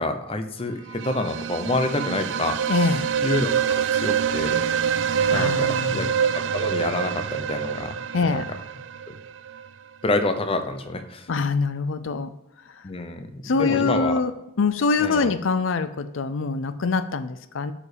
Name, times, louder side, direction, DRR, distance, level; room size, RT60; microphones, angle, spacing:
voice 1, 0.0-2.9 3.2-4.6 5.3-6.1 6.3-7.9 8.3-8.4 9.1-9.2 10.0-11.3 12.8-13.3 13.5-14.2 15.0-15.3, left 2 dB, 30° left, 7 dB, 0.8 m, -27 dB
sound 1, 0.9-9.7, right 7 dB, 70° right, 0.4 m, -26 dB
voice 2, 2.7-3.1 5.3-6.1 8.1-8.5 11.3-12.3 12.7-12.8 13.4-14.3 14.6-17.7, left 4 dB, 90° left, 12 dB, 0.5 m, -24 dB
sound 2, 4.5-8.8, right 1 dB, 50° right, 1.0 m, -45 dB
8.5 x 5.0 x 5.1 m, 0.91 s
head